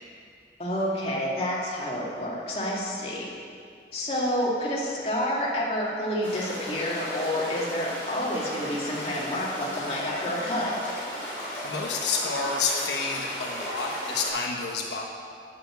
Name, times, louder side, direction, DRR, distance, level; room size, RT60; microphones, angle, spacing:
voice 1, 0.6-3.3 3.9-10.7, equal, 35° left, -5 dB, 2.1 m, -29 dB
sound 1, 6.2-14.3, equal, 10° left, 3.3 m, -36 dB
voice 2, 11.6-15.0, left 4 dB, 85° left, -1 dB, 1.1 m, -29 dB
9.2 x 7.0 x 7.8 m, 2.3 s
head